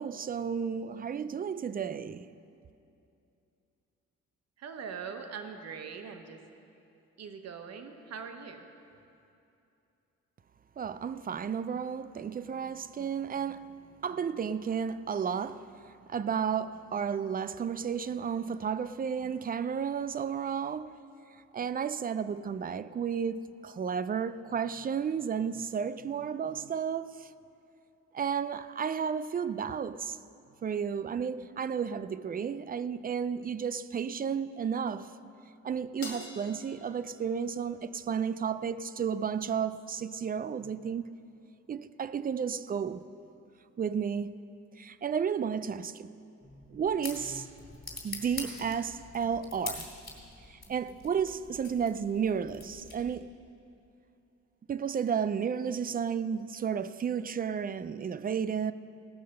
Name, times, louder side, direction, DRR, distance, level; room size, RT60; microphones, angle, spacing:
voice 1, 0.0-2.3 10.8-21.0 21.5-27.3 28.1-30.2 30.6-35.1 35.6-41.1 41.7-43.0 43.8-44.4 44.8-46.1 46.7-47.5 48.0-49.9 50.5-53.3 54.7-58.7, right 7 dB, 30° right, 0.4 m, -32 dB
voice 2, 4.6-6.4 7.2-8.7, right 6 dB, 60° right, 1.1 m, -42 dB
Crash cymbal, 36.0-38.5, left 3 dB, 45° left, 2.1 m, -47 dB
sound 1, 46.4-53.3, left 3 dB, 30° left, 3.0 m, -45 dB
17.5 x 6.5 x 6.6 m
cardioid pair, 90°, 30 cm